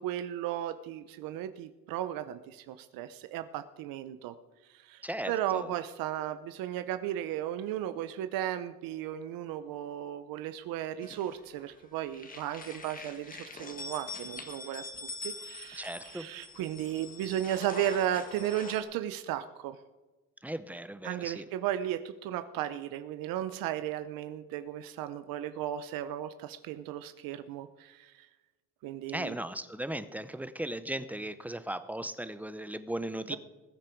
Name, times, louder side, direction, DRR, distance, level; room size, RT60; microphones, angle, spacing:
voice 1, 0.0-4.3 4.7-14.8 15.2-19.8 21.0-28.3 28.8-29.3 33.3-33.4, right 11 dB, 80° right, 11 dB, 0.8 m, -35 dB
voice 2, 5.0-5.7 15.8-16.3 20.4-21.5 29.1-33.4, right 1 dB, 5° right, 12 dB, 0.6 m, -37 dB
sound 1, 11.0-11.8 12.1-18.8, left 3 dB, 25° left, 1.8 m, -44 dB
20.5 x 8.8 x 4.5 m, 1.2 s
cardioid pair, 120°, 34 cm